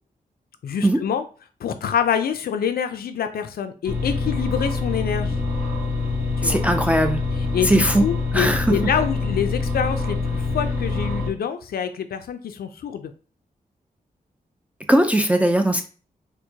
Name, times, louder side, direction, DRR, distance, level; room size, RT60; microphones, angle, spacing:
voice 1, 0.6-1.2 1.6-5.4 6.4-6.6 7.5-13.1, left 8 dB, 80° left, 9 dB, 0.4 m, -26 dB
sound 1, 3.8-11.3, left 3 dB, 75° right, 1.2 m, -25 dB
voice 2, 6.4-7.2 7.6-8.0 8.3-8.8 14.9-15.8, right 1 dB, 10° right, 5 dB, 0.3 m, -19 dB
4.5 x 2.1 x 2.7 m, 0.36 s
wide cardioid pair, 110°, 15 cm